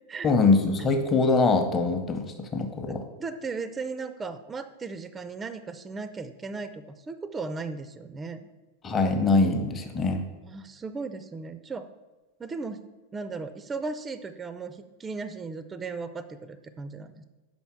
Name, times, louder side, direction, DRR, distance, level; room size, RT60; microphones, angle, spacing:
voice 1, 0.2-3.0 8.8-10.2, left 3 dB, 20° left, 5 dB, 0.7 m, -23 dB
voice 2, 2.9-8.5 10.4-11.9 12.4-12.8 13.1-17.2, right 4 dB, 15° right, 11 dB, 0.4 m, -36 dB
5.5 x 4.3 x 6.0 m, 1.2 s
figure-of-eight pair, 90°, 0 cm